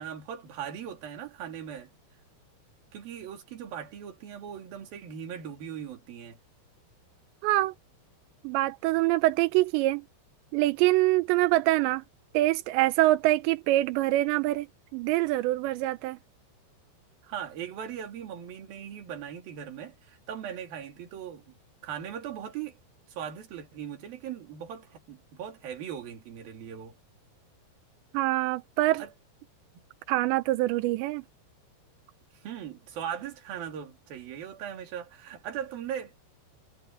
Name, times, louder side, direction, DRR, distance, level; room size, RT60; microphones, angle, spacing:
voice 1, 0.0-1.9 2.9-6.4 17.2-21.5 21.8-22.8 23.1-27.0 29.0-29.1 32.3-36.2, right 9 dB, 60° right, 4.2 m, -39 dB
voice 2, 7.4-7.7 8.4-10.0 10.5-12.0 12.3-14.7 14.9-16.2 28.1-29.0 30.1-31.2, right 17 dB, 90° right, 3.0 m, -25 dB
omnidirectional pair, 5.2 m